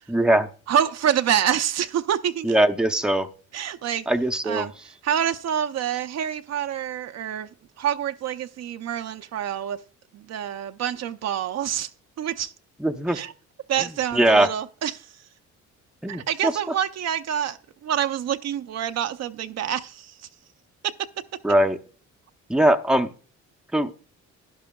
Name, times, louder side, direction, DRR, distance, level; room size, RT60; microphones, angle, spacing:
voice 1, 0.1-0.5 2.4-3.3 4.1-4.7 12.8-13.2 13.8-13.9 14.1-14.5 16.0-16.5 21.4-21.8 22.5-23.1 23.7-23.9, right 1 dB, 5° right, 0.6 m, -20 dB
voice 2, 0.7-2.5 3.5-4.1 4.5-4.7 5.0-7.5 7.8-9.8 10.1-11.9 12.2-12.5 13.1-13.3 13.7-15.1 16.1-17.6 17.8-20.1 20.8-20.9, right 9 dB, 60° right, 0.5 m, -26 dB
12.0 x 11.0 x 2.2 m
cardioid pair, 90°, 30 cm